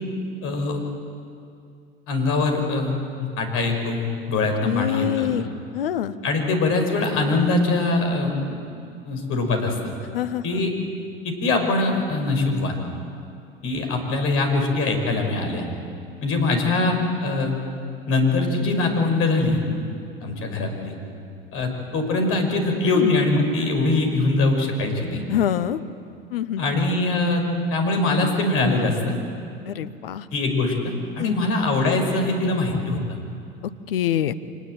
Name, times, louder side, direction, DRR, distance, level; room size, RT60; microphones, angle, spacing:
voice 1, 0.4-0.8 2.1-2.9 3.2-5.3 6.2-8.6 9.0-9.9 10.4-10.7 11.2-12.8 13.6-15.6 16.2-17.6 18.1-19.6 20.2-20.9 21.5-25.2 26.6-29.1 30.3-33.0, left 2 dB, 50° left, 4 dB, 5.9 m, -22 dB
voice 2, 4.7-5.5 5.7-6.1 10.1-10.4 22.9-23.1 25.3-25.8 26.3-26.6 29.7-30.3 31.2-31.6 33.9-34.3, left 11 dB, 70° left, 14 dB, 1.1 m, -25 dB
26.0 x 19.5 x 9.1 m, 2.4 s
figure-of-eight pair, 70°, 29 cm